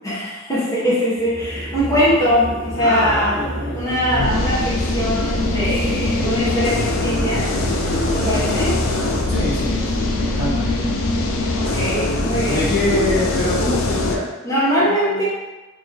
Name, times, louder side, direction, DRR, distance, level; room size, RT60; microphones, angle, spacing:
voice 1, 0.0-3.4 3.7-7.9 8.1-8.7 11.6-12.6 14.4-15.2, equal, 15° left, -10 dB, 1.1 m, -21 dB
sound 1, 1.1-12.5, equal, 5° right, 0.7 m, -32 dB
voice 2, 2.8-4.3 6.1-6.4 9.3-10.9 12.5-14.3 14.8-15.2, left 2 dB, 50° left, -8 dB, 1.3 m, -25 dB
sound 2, 4.2-14.2, left 2 dB, 75° left, 0.5 m, -22 dB
sound 3, 6.6-11.2, right 5 dB, 70° right, 0.5 m, -35 dB
3.5 x 3.0 x 3.4 m, 1.1 s
head